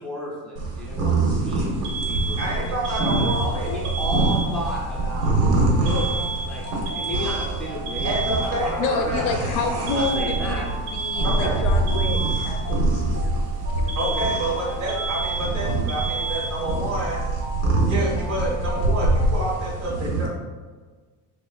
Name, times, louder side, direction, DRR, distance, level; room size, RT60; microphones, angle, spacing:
voice 1, 0.0-2.5 2.9-5.3 5.8-6.1 6.5-6.6 6.9-9.6 9.8-10.7, left 1 dB, ahead, -6 dB, 0.4 m, -33 dB
sound 1, 0.6-20.3, right 2 dB, 85° right, 1.2 m, -25 dB
Alarm, 1.8-4.8 5.9-8.8 9.9-12.8 13.9-16.9, right 4 dB, 65° right, 0.9 m, -31 dB
voice 2, 2.4-3.7 8.0-9.4 11.2-11.6 13.9-17.2 17.9-20.3, right 1 dB, 35° right, -5 dB, 1.4 m, -28 dB
sound 2, 3.2-19.5, right 1 dB, 15° right, 0.8 m, -38 dB
voice 3, 8.8-13.3 13.9-14.3, left 4 dB, 75° left, 5 dB, 0.6 m, -29 dB
6.2 x 2.1 x 2.3 m, 1.4 s
cardioid pair, 145°, 48 cm